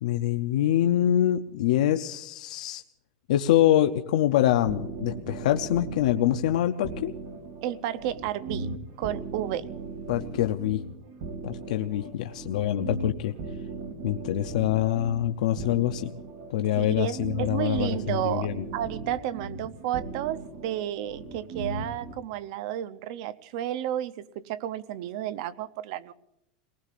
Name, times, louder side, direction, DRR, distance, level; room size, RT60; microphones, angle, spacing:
voice 1, 0.0-2.8 3.3-7.1 10.1-10.8 11.4-13.3 14.0-16.1 16.5-18.7, left 12 dB, 75° left, 7 dB, 0.5 m, -25 dB
sound 1, 4.7-22.1, right 3 dB, 70° right, 2.1 m, -38 dB
voice 2, 7.6-8.7 9.0-9.7 16.8-26.1, right 12 dB, 50° right, 15 dB, 0.6 m, -32 dB
29.5 x 19.0 x 2.5 m, 0.82 s
supercardioid pair, 170°, 4 cm